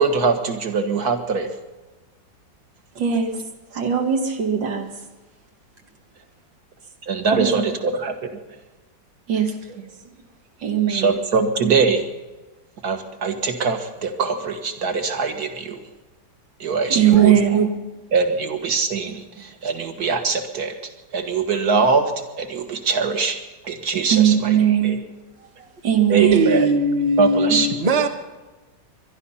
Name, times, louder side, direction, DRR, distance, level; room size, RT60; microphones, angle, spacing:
voice 1, 0.0-1.5 7.1-8.2 10.9-12.1 12.8-15.8 16.6-17.4 18.1-20.7 21.1-22.1 22.4-23.4 23.6-24.6 24.8-25.0 26.1-26.7 27.2-27.7, right 4 dB, 60° right, 2.0 m, -22 dB
voice 2, 3.0-3.4 3.7-4.9 7.3-7.5 9.3-9.8 10.6-11.1 16.9-17.7 24.1-25.0 25.6-26.5, right 9 dB, 85° right, 2.5 m, -19 dB
voice 3, 26.3-28.1, right 1 dB, 25° right, 1.1 m, -19 dB
22.0 x 11.5 x 5.7 m
omnidirectional pair, 1.9 m